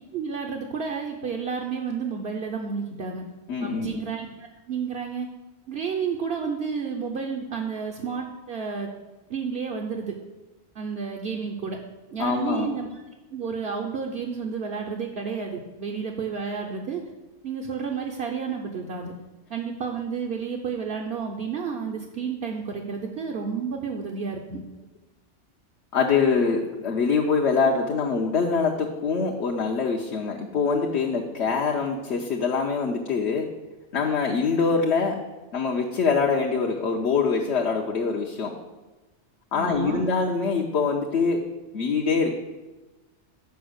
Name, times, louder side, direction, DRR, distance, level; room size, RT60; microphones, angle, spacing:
voice 1, 0.1-3.3 3.6-5.3 5.7-8.9 9.3-10.2 10.7-11.8 12.1-12.9 13.3-17.0 17.4-19.1 19.5-24.6 39.5-40.1, right 5 dB, 60° right, 0 dB, 1.0 m, -31 dB
voice 2, 3.5-4.0 12.2-12.7 25.9-33.5 33.9-35.2 35.5-38.5 39.5-41.4 41.7-42.3, left 5 dB, 70° left, -1 dB, 1.1 m, -24 dB
7.0 x 5.4 x 6.4 m, 1.1 s
omnidirectional pair, 1.2 m